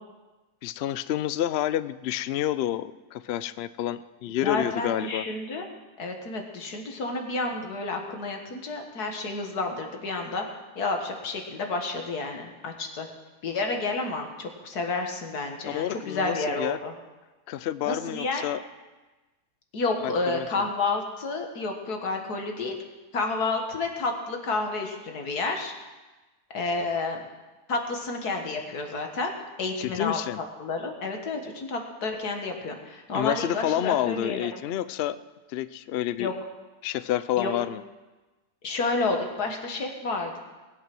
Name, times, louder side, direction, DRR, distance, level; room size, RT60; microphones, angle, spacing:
voice 1, 0.6-5.2 15.7-16.8 17.5-18.6 20.0-20.7 29.8-30.4 33.1-35.2 35.5-36.3 36.8-37.8, left 12 dB, 90° left, 14 dB, 0.5 m, -29 dB
voice 2, 4.4-5.7 6.0-10.5 10.8-13.1 13.4-16.9 17.9-18.4 19.7-22.8 23.1-25.7 26.5-27.2 27.7-29.3 29.6-34.6 36.2-36.3 37.4-37.5 38.6-40.4, left 3 dB, 75° left, 3 dB, 2.1 m, -30 dB
19.5 x 8.3 x 6.1 m, 1.2 s
omnidirectional pair, 1.7 m